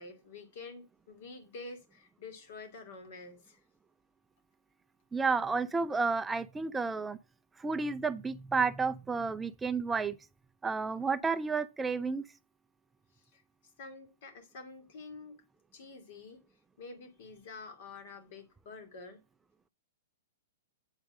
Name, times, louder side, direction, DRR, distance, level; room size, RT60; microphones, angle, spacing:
voice 1, 0.0-3.6 13.1-15.4 15.7-16.4 16.8-19.2, left 3 dB, 60° left, 2.6 m, -48 dB
voice 2, 5.1-7.2 7.6-10.2 10.6-12.2, right 4 dB, 10° right, 0.5 m, -31 dB
8.2 x 5.2 x 6.4 m
hypercardioid pair, 125°, 0 cm